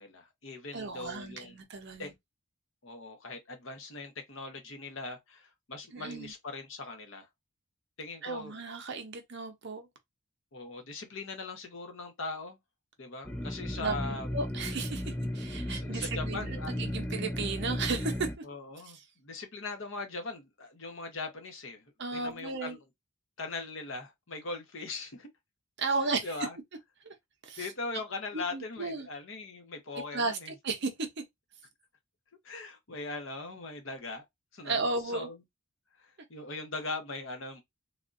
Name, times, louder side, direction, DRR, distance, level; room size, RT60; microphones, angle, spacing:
voice 1, 0.0-1.6 2.0-2.1 2.8-7.3 8.0-8.6 10.5-12.6 13.0-14.3 15.7-16.8 18.4-21.8 22.1-22.8 23.4-25.3 26.2-26.6 27.6-30.5 32.4-34.2 34.5-35.4 36.0-37.6, left 3 dB, 55° left, 0.9 m, -40 dB
voice 2, 0.7-2.1 5.9-6.3 8.2-9.9 13.8-14.0 14.3-18.4 22.0-22.8 25.8-26.3 27.0-27.1 27.4-27.7 28.5-29.1 30.1-31.1 34.6-35.3, right 3 dB, 50° right, 0.7 m, -34 dB
sound 1, 13.2-18.3, equal, 5° left, 0.4 m, -35 dB
3.5 x 2.4 x 2.5 m
head